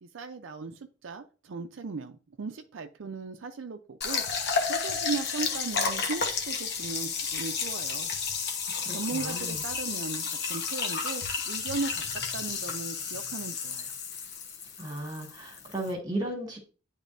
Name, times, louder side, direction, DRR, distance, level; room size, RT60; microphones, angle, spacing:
voice 1, 0.0-4.2 4.7-8.1 8.9-12.0 12.3-13.9, right 4 dB, 75° right, 6 dB, 0.5 m, -37 dB
sound 1, 4.0-15.9, left 5 dB, 60° left, 1.1 m, -32 dB
voice 2, 8.7-9.6 14.8-16.6, right 1 dB, 20° right, 1 dB, 1.8 m, -35 dB
10.0 x 3.6 x 2.6 m, 0.36 s
head